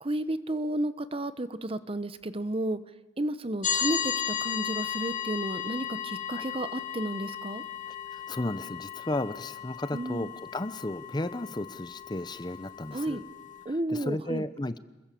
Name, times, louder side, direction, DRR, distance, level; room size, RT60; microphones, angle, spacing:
voice 1, 0.0-2.8 3.2-7.6 9.9-10.3 12.9-13.2 13.6-14.4, right 1 dB, 30° right, 13 dB, 1.0 m, -32 dB
sound 1, 3.6-13.6, left 8 dB, 45° left, 2.5 m, -35 dB
voice 2, 7.9-13.2 13.7-14.8, left 1 dB, 25° left, 14 dB, 0.8 m, -34 dB
27.5 x 21.5 x 7.6 m, 1.1 s
head